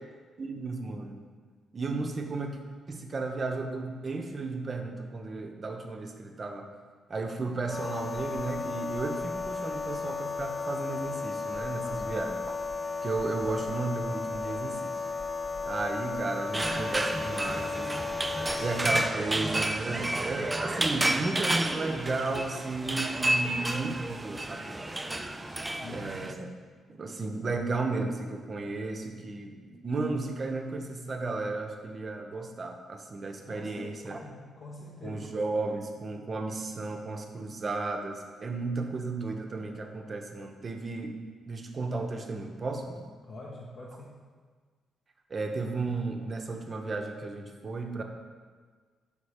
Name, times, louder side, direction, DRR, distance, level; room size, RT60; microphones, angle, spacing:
voice 1, 0.4-1.2 1.7-2.6 2.9-6.7 7.1-12.4 13.0-15.0 15.7-18.0 18.6-25.3 25.9-26.5 26.9-34.2 35.0-41.2 41.5-43.0 45.3-48.0, right 3 dB, 45° right, 4 dB, 0.7 m, -34 dB
Laser sustained, 7.7-18.9, left 4 dB, 35° left, 0.5 m, -34 dB
voice 2, 11.8-12.3 25.6-26.4 33.4-35.3 43.2-44.1, left 2 dB, 60° left, -5 dB, 0.9 m, -45 dB
sound 1, 16.5-26.3, right 1 dB, 20° right, 0.4 m, -31 dB
5.2 x 4.1 x 5.0 m, 1.5 s
hypercardioid pair, 45°, 0 cm